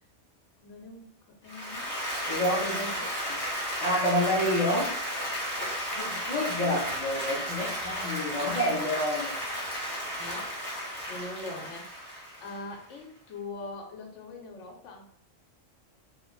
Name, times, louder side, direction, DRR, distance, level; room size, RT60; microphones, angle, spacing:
voice 1, 0.6-1.1 1.4-3.3 5.6-5.8 10.2-15.1, left 2 dB, 80° left, 2 dB, 1.0 m, -42 dB
Applause, 1.5-12.8, equal, 20° left, 0.9 m, -34 dB
voice 2, 2.3-2.8 3.8-4.9 5.2-5.6 6.0-9.4, left 1 dB, 40° left, -7 dB, 0.4 m, -28 dB
2.4 x 2.1 x 3.1 m, 0.63 s
omnidirectional pair, 1.2 m